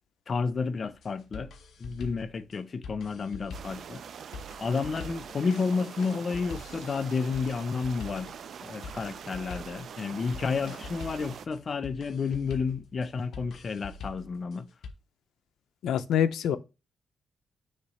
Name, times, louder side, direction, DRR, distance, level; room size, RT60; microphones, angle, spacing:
voice 1, 0.3-1.5 1.8-4.0 4.6-8.3 8.6-14.7, left 5 dB, 40° left, 0.6 m, -31 dB
sound 1, 0.9-14.9, left 4 dB, 70° left, 1.2 m, -45 dB
sound 2, 3.5-11.5, right 7 dB, 60° right, 0.5 m, -44 dB
voice 2, 15.8-16.6, left 9 dB, 90° left, 0.7 m, -25 dB
6.6 x 3.0 x 5.6 m
cardioid pair, 135°, 0 cm